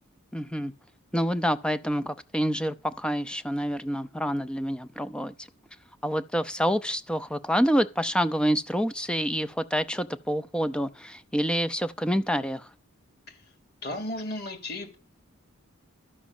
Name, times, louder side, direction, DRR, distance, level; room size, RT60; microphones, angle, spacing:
voice 1, 0.3-0.7 1.1-5.5 6.0-12.7, equal, 5° left, 0.5 m, -27 dB
voice 2, 13.8-15.0, left 1 dB, 45° left, 3.2 m, -34 dB
12.5 x 6.2 x 7.1 m
head